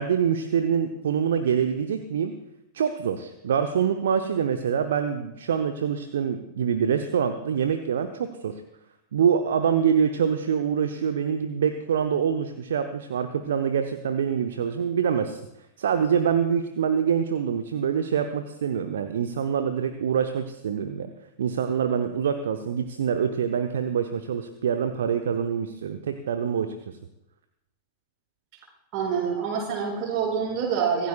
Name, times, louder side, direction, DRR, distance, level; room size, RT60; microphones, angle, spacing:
voice 1, 0.0-2.3 2.7-8.6 9.1-15.4 15.8-21.1 21.4-27.0, right 7 dB, 65° right, 8 dB, 0.9 m, -25 dB
voice 2, 28.9-31.1, right 6 dB, 40° right, -3 dB, 6.4 m, -26 dB
25.0 x 15.5 x 2.4 m, 0.88 s
figure-of-eight pair, 90°, 0 cm